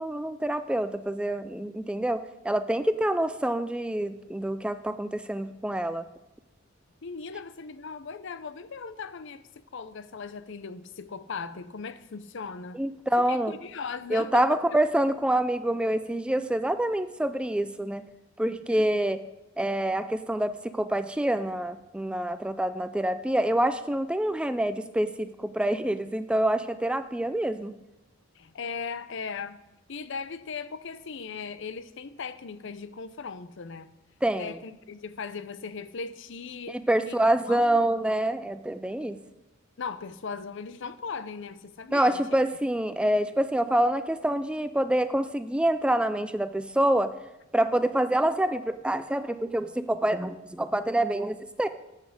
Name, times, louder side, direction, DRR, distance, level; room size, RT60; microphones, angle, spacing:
voice 1, 0.0-6.1 12.7-13.5 14.1-18.0 18.4-19.2 19.6-27.7 34.2-34.6 36.7-39.2 41.9-47.1 47.5-51.7, right 1 dB, 5° right, 0.4 m, -26 dB
voice 2, 7.0-9.4 9.7-12.8 13.3-14.5 28.4-29.6 29.9-33.9 34.4-36.8 37.1-37.2 37.5-37.8 39.8-42.2, left 5 dB, 65° left, 0.6 m, -38 dB
8.4 x 8.3 x 6.5 m
head